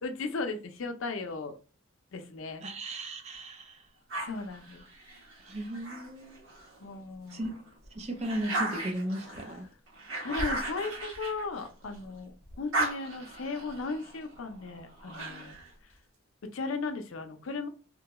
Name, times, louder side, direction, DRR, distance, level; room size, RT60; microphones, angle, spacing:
voice 1, 0.0-1.6 2.1-2.6 4.2-4.8 6.8-7.5 9.4-9.5 10.2-15.6 16.4-17.7, left 3 dB, 75° left, 0.5 m, -36 dB
voice 2, 2.6-3.8 5.5-6.4 7.3-7.6 7.9-9.7, right 1 dB, 30° right, 0.5 m, -36 dB
sound 1, 4.1-6.8 7.3-12.1 12.4-15.7, right 2 dB, 75° right, 1.1 m, -37 dB
3.8 x 2.2 x 2.9 m
head